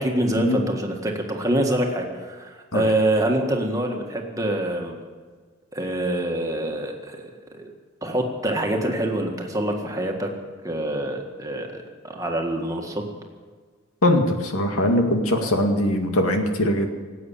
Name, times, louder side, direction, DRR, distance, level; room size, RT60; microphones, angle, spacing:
voice 1, 0.0-5.0 5.7-7.2 7.5-7.7 8.0-10.3 10.6-13.1, right 1 dB, 15° right, 2 dB, 1.7 m, -25 dB
voice 2, 14.0-16.9, left 1 dB, 90° left, 4 dB, 2.1 m, -21 dB
19.0 x 8.8 x 8.6 m, 1.5 s
head